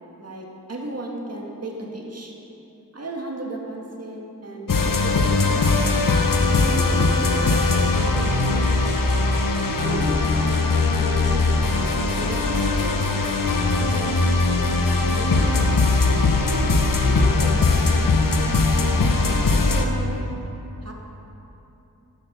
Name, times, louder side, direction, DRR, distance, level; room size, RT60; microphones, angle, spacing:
voice 1, 0.2-2.3 2.9-5.8 6.5-8.9 9.7-11.9 12.2-13.4 13.8-15.6 16.4-18.1 18.7-20.4 20.8-20.9, right 1 dB, 45° right, -1 dB, 2.0 m, -35 dB
sound 1, 4.7-19.8, left 3 dB, 65° left, 1.0 m, -20 dB
11.5 x 8.6 x 5.2 m, 3.0 s
cardioid pair, 40°, 36 cm